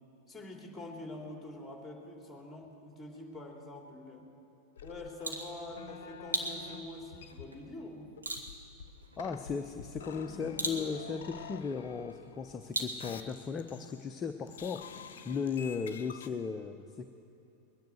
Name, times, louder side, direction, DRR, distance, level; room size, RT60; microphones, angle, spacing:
voice 1, 0.3-4.3 4.8-8.1, left 2 dB, 5° left, 0 dB, 2.9 m, -45 dB
sound 1, 4.8-6.8 7.1-7.8 8.2-12.6 13.0-14.1 14.5-16.3, left 6 dB, 60° left, 0.8 m, -49 dB
sound 2, 4.9-13.5, right 2 dB, 80° right, 1.6 m, -41 dB
voice 2, 9.2-14.8 15.2-17.0, left 5 dB, 20° left, 6 dB, 0.7 m, -36 dB
21.0 x 10.5 x 6.6 m, 2.9 s
figure-of-eight pair, 90°, 0 cm